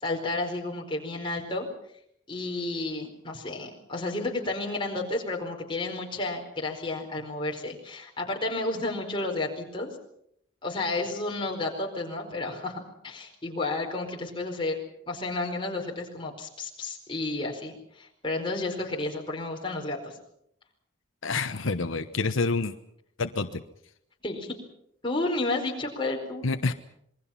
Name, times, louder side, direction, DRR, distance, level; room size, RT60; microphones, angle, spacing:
voice 1, 0.0-1.7 2.3-9.9 10.6-14.8 15.1-20.1 24.2-24.5 25.0-26.5, left 2 dB, 25° left, 1 dB, 4.7 m, -31 dB
voice 2, 21.2-22.7 23.2-23.6 26.4-26.7, left 3 dB, 90° left, 9 dB, 1.1 m, -27 dB
27.0 x 22.0 x 5.8 m, 0.72 s
head